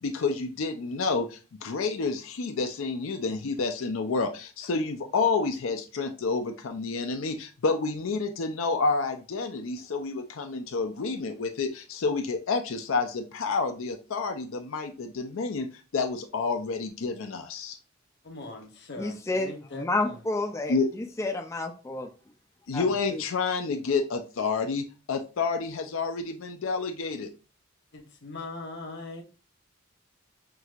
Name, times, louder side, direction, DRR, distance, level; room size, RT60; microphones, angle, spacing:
voice 1, 0.0-15.7 15.9-17.8 20.7-20.9 22.7-27.3, left 4 dB, 80° left, 0.5 m, -29 dB
voice 2, 18.2-20.2 27.9-29.2, left 3 dB, 60° left, 1.0 m, -41 dB
voice 3, 19.0-19.5 19.8-22.1 22.7-23.2, left 2 dB, 15° left, 0.4 m, -30 dB
6.0 x 2.7 x 2.4 m
head